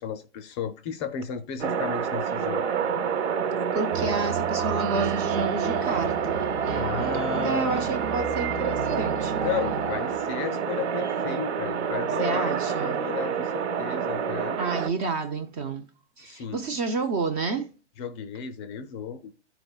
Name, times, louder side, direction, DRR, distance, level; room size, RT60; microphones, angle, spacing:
voice 1, 0.0-2.8 6.7-7.9 9.4-14.6 16.2-16.6 18.0-19.3, left 7 dB, 25° left, 0.5 m, -34 dB
sound 1, 1.6-14.9, right 7 dB, 70° right, 1.2 m, -28 dB
voice 2, 3.7-6.4 7.4-9.5 12.2-13.0 14.6-15.9 16.2-17.7, right 3 dB, 20° right, 0.5 m, -30 dB
sound 2, 3.9-10.5, right 7 dB, 45° right, 0.8 m, -33 dB
sound 3, 7.7-14.7, right 5 dB, 85° right, 1.2 m, -40 dB
13.0 x 4.5 x 2.3 m
hypercardioid pair, 145°, 35 cm